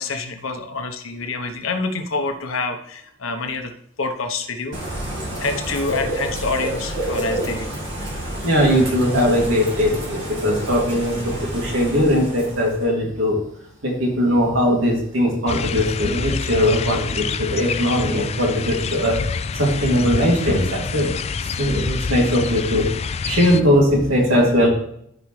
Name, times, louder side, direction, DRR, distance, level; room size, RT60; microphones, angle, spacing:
voice 1, 0.0-3.7 4.0-5.0 5.4-7.7, left 3 dB, 90° left, 6 dB, 1.1 m, -27 dB
Bird / Rain, 4.7-12.9, right 1 dB, 60° right, 2.0 m, -29 dB
voice 2, 8.4-13.4 13.8-19.2 19.6-21.1 21.6-24.7, equal, 75° right, -2 dB, 2.7 m, -19 dB
sound 1, 15.5-23.6, left 5 dB, 30° left, 0.3 m, -27 dB
13.5 x 5.1 x 3.3 m, 0.72 s
head